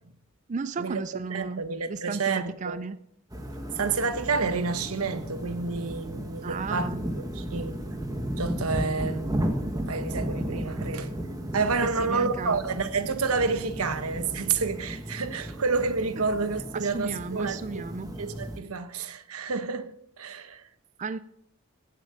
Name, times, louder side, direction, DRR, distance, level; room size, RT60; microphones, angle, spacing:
voice 1, 0.5-3.0 6.4-7.0 11.8-12.6 16.7-18.2 21.0-21.2, right 4 dB, 35° right, 0.4 m, -34 dB
voice 2, 1.3-2.8 3.8-6.9 7.3-8.0 8.4-11.1 11.5-17.8 18.2-20.6, right 4 dB, 85° right, 1.1 m, -29 dB
sound 1, 3.3-18.6, right 1 dB, 15° right, 1.4 m, -34 dB
16.5 x 7.5 x 5.6 m
head